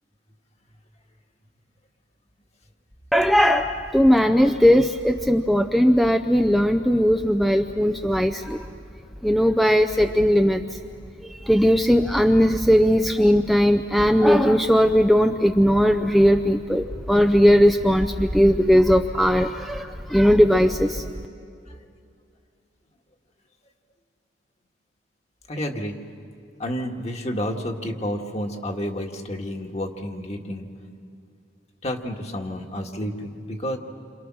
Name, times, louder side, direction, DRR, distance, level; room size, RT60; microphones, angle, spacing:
voice 1, 3.1-8.6 9.2-10.6 11.5-21.1, equal, ahead, 6 dB, 0.6 m, -18 dB
voice 2, 25.5-26.0 26.6-30.7 31.8-33.8, equal, 40° left, 3 dB, 1.8 m, -30 dB
29.0 x 27.0 x 6.2 m, 2.4 s
head